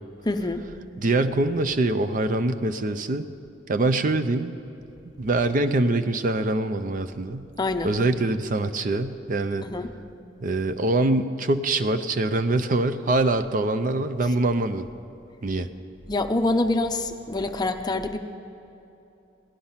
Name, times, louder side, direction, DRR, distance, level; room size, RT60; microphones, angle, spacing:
voice 1, 0.2-0.6 7.6-7.9 9.6-9.9 16.1-18.2, left 2 dB, 20° left, 7 dB, 0.6 m, -25 dB
voice 2, 1.0-3.3 3.7-4.5 5.2-7.5 7.8-9.7 10.4-14.9 15.4-15.7, right 2 dB, 45° right, 10 dB, 0.5 m, -24 dB
17.5 x 12.0 x 5.6 m, 2.9 s
head